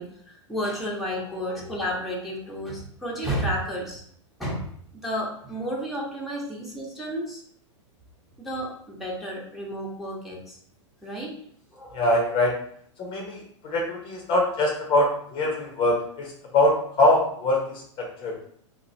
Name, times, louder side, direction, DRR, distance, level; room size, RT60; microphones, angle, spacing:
voice 1, 0.0-4.0 4.4-4.7 4.9-7.4 8.4-10.6 11.0-11.3 11.7-12.3, equal, ahead, -4 dB, 1.1 m, -32 dB
voice 2, 11.9-12.5 13.0-16.3 16.5-17.8 18.2-18.3, left 1 dB, 30° left, 0 dB, 0.8 m, -23 dB
3.5 x 2.9 x 2.7 m, 0.63 s
hypercardioid pair, 110°, 16 cm